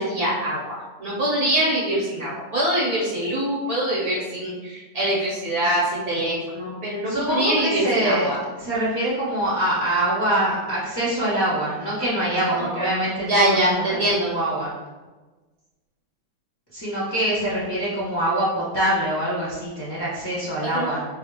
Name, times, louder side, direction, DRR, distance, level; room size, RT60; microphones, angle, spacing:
voice 1, 0.0-8.4 12.5-12.9 13.3-14.3 20.7-20.9, right 1 dB, 65° right, -5 dB, 1.1 m, -24 dB
voice 2, 7.1-8.3 8.6-14.7 16.7-21.0, right 1 dB, 15° left, -10 dB, 1.3 m, -24 dB
4.3 x 2.7 x 2.8 m, 1.2 s
omnidirectional pair, 2.0 m